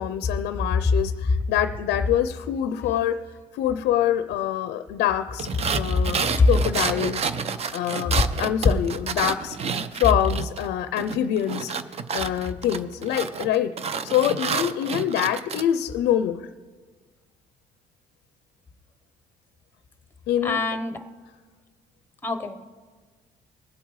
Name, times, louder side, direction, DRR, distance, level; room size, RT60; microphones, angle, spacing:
voice 1, 0.0-7.3 7.7-9.6 9.9-11.7 12.1-13.7 14.0-16.5 20.3-20.6, left 11 dB, 80° left, 11 dB, 0.5 m, -25 dB
sound 1, 5.4-10.7 11.0-15.6, right 6 dB, 40° right, 0.5 m, -29 dB
voice 2, 20.4-21.0 22.2-22.6, left 3 dB, 10° left, 8 dB, 0.9 m, -23 dB
20.0 x 8.1 x 3.1 m, 1.5 s
cardioid pair, 110°, 17 cm